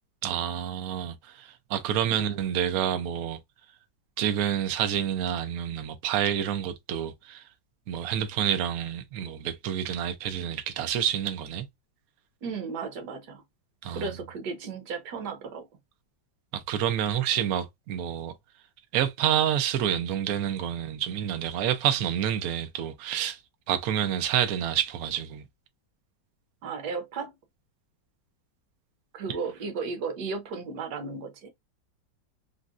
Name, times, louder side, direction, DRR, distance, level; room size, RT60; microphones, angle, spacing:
voice 1, 0.2-3.4 4.2-7.4 7.9-11.6 13.8-14.1 16.5-18.3 18.9-23.4 23.7-25.4, right 10 dB, 85° right, 0.8 m, -28 dB
voice 2, 12.4-13.4 13.9-15.7 26.6-27.3 29.1-31.5, right 4 dB, 65° right, 1.2 m, -34 dB
3.8 x 2.0 x 2.4 m
omnidirectional pair, 2.1 m